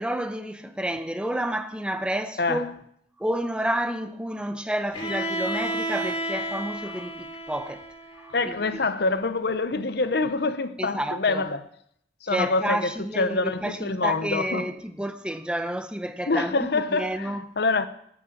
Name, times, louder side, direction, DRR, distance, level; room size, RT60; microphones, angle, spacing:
voice 1, 0.0-2.7 3.2-7.8 8.2-8.5 10.8-11.5 12.2-17.4, right 1 dB, 5° right, 0.7 m, -30 dB
Bowed string instrument, 4.9-8.8, right 1 dB, 30° left, 2.8 m, -32 dB
voice 2, 8.3-11.6 12.2-12.9 13.2-14.8 16.3-17.9, left 3 dB, 60° left, 0.8 m, -26 dB
11.0 x 7.4 x 8.5 m
head